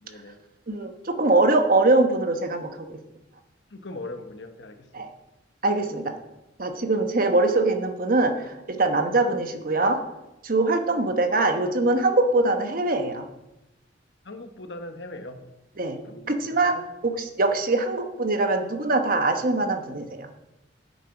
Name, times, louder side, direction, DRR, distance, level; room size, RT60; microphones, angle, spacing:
voice 1, 0.0-0.4 3.7-5.1 14.2-15.4 16.0-16.3 16.6-16.8, left 2 dB, 65° left, 7 dB, 1.2 m, -39 dB
voice 2, 0.7-3.0 4.9-5.1 5.6-6.1 6.6-10.0 10.4-13.3 15.8-16.0 16.3-20.3, right 2 dB, 50° right, 6 dB, 1.1 m, -23 dB
9.1 x 8.3 x 5.9 m, 0.92 s
head